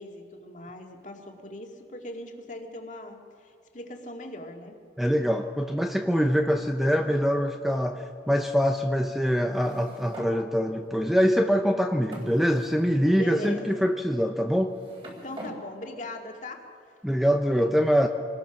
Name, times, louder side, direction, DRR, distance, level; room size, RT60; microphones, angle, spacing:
voice 1, 0.0-4.8 13.1-13.7 15.2-16.7, left 1 dB, 45° left, 2 dB, 2.2 m, -39 dB
voice 2, 5.0-14.8 17.0-18.1, equal, ahead, 4 dB, 0.7 m, -24 dB
sound 1, 9.5-10.4 11.2-11.3 12.1-12.9 13.4-13.6 14.5-15.6, equal, 30° right, 3.7 m, -42 dB
26.0 x 19.5 x 6.0 m, 2.4 s
head